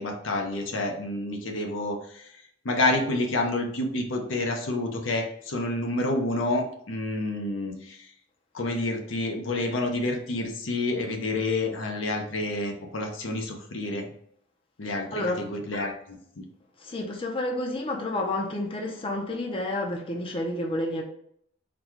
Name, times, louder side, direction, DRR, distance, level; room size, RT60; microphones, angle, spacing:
voice 1, 0.0-8.1 8.5-14.1 14.8-16.5, left 2 dB, 75° left, 0.8 m, -29 dB
voice 2, 15.1-15.4 16.8-21.0, left 1 dB, 30° left, 0.6 m, -30 dB
4.1 x 2.3 x 4.5 m
head